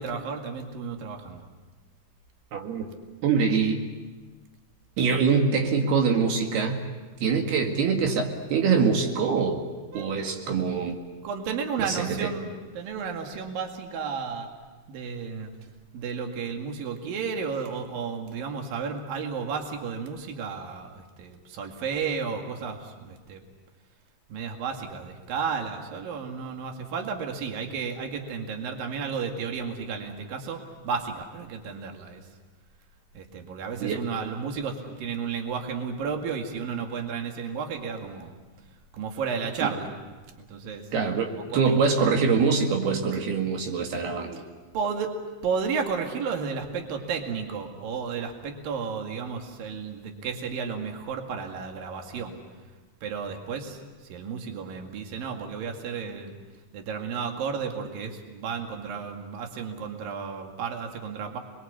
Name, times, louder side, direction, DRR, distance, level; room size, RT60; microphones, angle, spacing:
voice 1, 0.0-1.5 7.4-7.6 9.9-10.6 11.2-14.5 14.9-15.5 15.9-23.4 24.3-32.2 33.1-38.4 38.9-39.9 40.4-40.9 41.4-42.1 44.1-44.4 44.7-45.1 45.4-52.4 53.0-56.3 56.7-61.4, right 6 dB, 65° right, 3 dB, 3.8 m, -33 dB
voice 2, 2.5-2.8 3.2-3.8 5.0-6.9 7.2-9.6 10.0-11.0 11.8-12.3 33.8-34.0 39.6-39.7 40.9-44.3, right 5 dB, 85° right, 2 dB, 4.1 m, -24 dB
29.5 x 22.5 x 8.3 m, 1.3 s
omnidirectional pair, 4.4 m